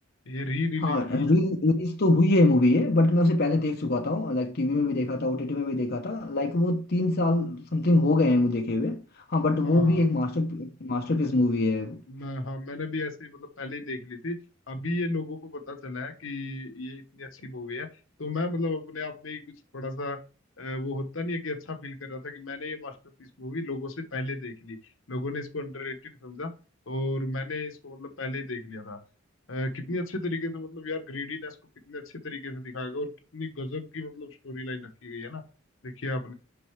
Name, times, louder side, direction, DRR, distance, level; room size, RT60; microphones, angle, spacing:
voice 1, 0.2-1.4 3.5-3.6 9.6-10.0 12.1-14.4 14.7-17.9 18.2-20.2 20.6-26.5 26.9-29.0 29.5-31.6 31.9-35.4 35.8-36.3, left 2 dB, 80° left, 1.1 m, -34 dB
voice 2, 0.8-9.0 9.3-12.0, left 2 dB, 55° left, 0.8 m, -24 dB
5.5 x 5.3 x 4.5 m
head